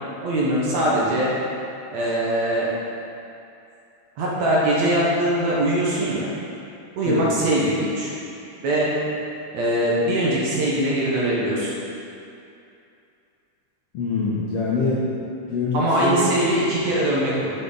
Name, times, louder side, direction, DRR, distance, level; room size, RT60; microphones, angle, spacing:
voice 1, 0.2-1.3 1.9-2.7 4.2-6.3 7.0-8.1 8.6-8.9 9.5-11.7 15.7-17.5, right 1 dB, 65° right, -6 dB, 2.2 m, -22 dB
voice 2, 13.9-15.0 15.5-16.2, left 4 dB, 70° left, -8 dB, 1.6 m, -24 dB
7.9 x 6.7 x 3.9 m, 2.6 s
omnidirectional pair, 3.9 m